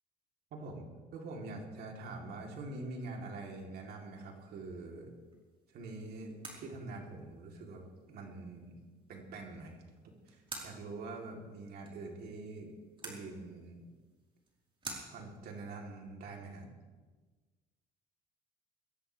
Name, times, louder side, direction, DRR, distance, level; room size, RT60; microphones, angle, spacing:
voice 1, 0.5-5.1 5.7-8.7 9.1-9.8 10.3-12.7 13.0-13.8 15.1-16.7, right 3 dB, 70° right, 0 dB, 3.6 m, -45 dB
sound 1, 4.0-15.7, right 3 dB, 30° right, 4.4 m, -53 dB
22.5 x 16.5 x 3.5 m, 1.3 s
cardioid pair, 110°, 17 cm